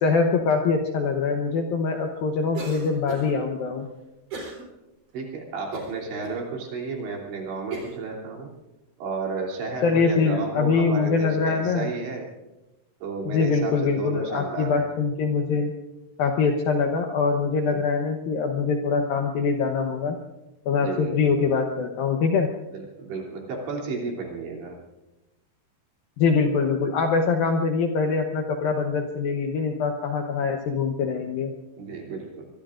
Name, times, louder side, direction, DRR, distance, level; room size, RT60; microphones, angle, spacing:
voice 1, 0.0-3.9 9.8-11.9 13.3-15.7 16.2-20.2 20.7-22.5 26.2-31.5, left 5 dB, 75° left, 3 dB, 2.2 m, -23 dB
Cough, 2.5-3.4 4.3-4.6 5.1-5.2 5.7-6.4 7.0-7.1 7.7-8.0, right 3 dB, 45° right, 5.1 m, -36 dB
voice 2, 5.1-8.5 9.0-12.2 13.0-14.9 17.7-17.8 20.8-21.4 22.7-24.7 31.8-32.3, right 4 dB, 75° right, -1 dB, 5.3 m, -32 dB
25.0 x 22.5 x 2.5 m, 1.0 s
omnidirectional pair, 5.3 m